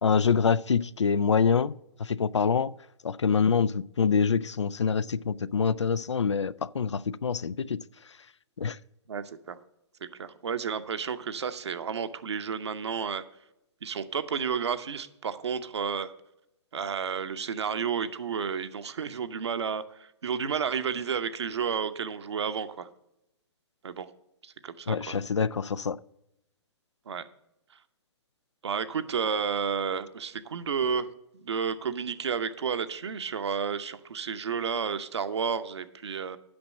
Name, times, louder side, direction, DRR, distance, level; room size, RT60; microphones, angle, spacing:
voice 1, 0.0-1.7 2.0-2.7 3.0-7.8 8.6-8.8 24.9-26.0, left 6 dB, 85° left, 0.4 m, -25 dB
voice 2, 9.1-9.6 10.2-13.2 13.8-16.1 16.7-22.9 23.8-24.1 24.4-25.2 27.1-27.2 28.6-31.1 31.4-36.4, right 6 dB, 70° right, 0.8 m, -31 dB
8.7 x 6.1 x 7.3 m
figure-of-eight pair, 125°, 15 cm